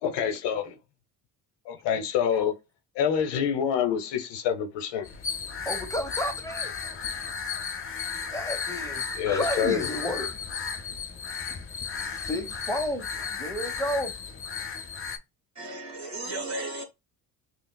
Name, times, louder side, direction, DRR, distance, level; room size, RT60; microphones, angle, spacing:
voice 1, 0.0-0.8 1.7-2.5 2.9-5.1 9.1-9.9, left 8 dB, 75° left, 0.9 m, -27 dB
sound 1, 5.0-15.2, left 6 dB, 30° left, 0.7 m, -34 dB
voice 2, 5.7-6.7 8.3-10.4 11.5-11.6 12.0-14.1, equal, 5° left, 1.0 m, -32 dB
voice 3, 15.6-16.8, right 2 dB, 40° right, 1.6 m, -34 dB
5.8 x 2.3 x 2.2 m
supercardioid pair, 75°, 43 cm